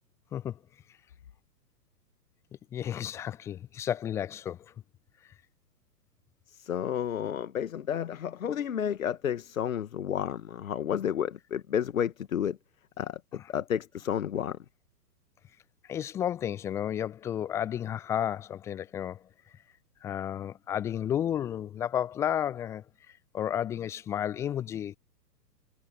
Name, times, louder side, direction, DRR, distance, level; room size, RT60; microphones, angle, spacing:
voice 1, 2.7-4.6 15.9-19.2 20.0-25.0, left 10 dB, 5° left, 0.6 m, -32 dB
voice 2, 6.5-12.6 13.0-14.6, left 9 dB, 55° left, 1.8 m, -31 dB
figure-of-eight pair, 115°, 49 cm